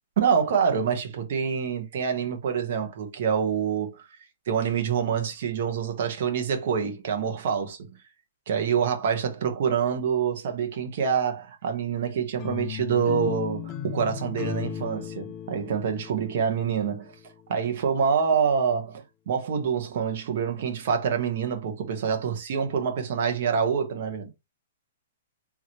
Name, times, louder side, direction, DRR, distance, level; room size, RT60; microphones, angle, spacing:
voice 1, 0.2-4.0 4.5-7.9 8.5-17.1 17.5-24.3, right 7 dB, 55° right, 1.1 m, -26 dB
sound 1, 12.4-17.5, left 10 dB, 30° left, 0.4 m, -36 dB
3.8 x 3.0 x 3.0 m
hypercardioid pair, 160°, 0 cm